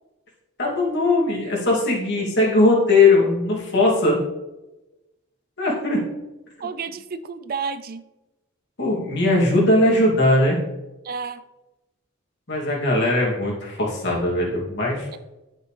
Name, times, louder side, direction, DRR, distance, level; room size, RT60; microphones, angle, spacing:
voice 1, 0.6-4.2 5.6-6.0 8.8-10.6 12.5-15.2, left 2 dB, 60° left, -3 dB, 2.5 m, -19 dB
voice 2, 6.6-8.0 11.0-11.4 15.1-15.2, right 5 dB, 45° right, 12 dB, 0.4 m, -31 dB
10.5 x 6.7 x 3.3 m, 1.0 s
head